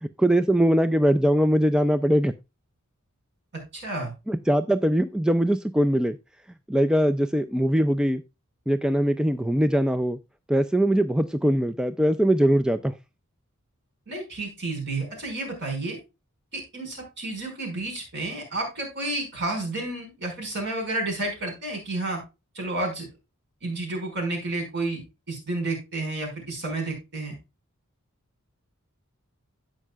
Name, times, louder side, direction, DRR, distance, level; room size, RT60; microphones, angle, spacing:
voice 1, 0.0-2.3 4.3-6.2 6.7-8.2 8.7-10.2 10.5-13.0, equal, 5° right, 0.3 m, -21 dB
voice 2, 3.7-4.1 14.1-16.0 16.5-22.2 22.5-23.1 23.6-25.0 25.3-27.4, right 2 dB, 55° right, 5.3 m, -31 dB
16.5 x 5.5 x 2.3 m
head